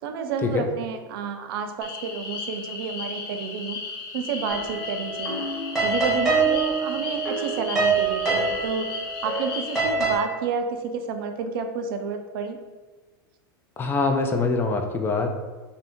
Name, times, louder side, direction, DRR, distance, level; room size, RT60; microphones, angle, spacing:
voice 1, 0.0-3.8 4.1-5.4 5.8-12.6, right 5 dB, 70° right, 6 dB, 0.4 m, -30 dB
sound 1, 1.8-9.8, left 4 dB, 85° left, 0.7 m, -35 dB
sound 2, 4.5-10.2, right 4 dB, 5° right, 0.9 m, -25 dB
voice 2, 13.8-15.3, left 3 dB, 15° left, 4 dB, 0.3 m, -24 dB
2.7 x 2.6 x 3.5 m, 1.2 s
supercardioid pair, 140°, 12 cm